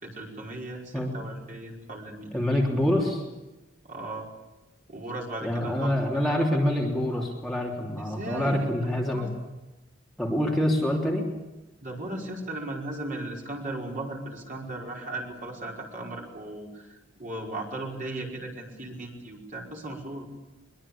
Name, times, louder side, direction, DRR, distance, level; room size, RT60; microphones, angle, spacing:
voice 1, 0.0-2.4 3.8-4.3 4.9-5.9 8.1-9.3 11.8-20.3, right 2 dB, 40° right, 0 dB, 5.2 m, -37 dB
voice 2, 2.3-3.2 5.4-9.3 10.2-11.2, left 1 dB, ahead, -2 dB, 3.3 m, -26 dB
23.0 x 23.0 x 8.7 m, 1.0 s
head